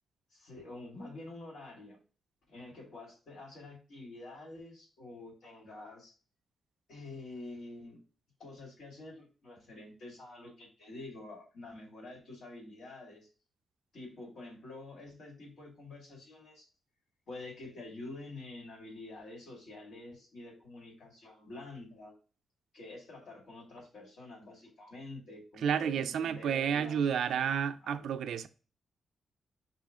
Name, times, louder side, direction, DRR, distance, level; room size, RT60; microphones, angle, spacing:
voice 1, 0.3-2.0 2.5-6.1 6.9-8.0 8.4-13.3 13.9-16.7 17.3-22.1 22.7-27.0 27.8-28.1, left 2 dB, 75° left, 2.3 m, -48 dB
voice 2, 25.6-28.5, right 8 dB, 80° right, 0.4 m, -31 dB
5.6 x 2.4 x 3.6 m
wide cardioid pair, 165°, 0 cm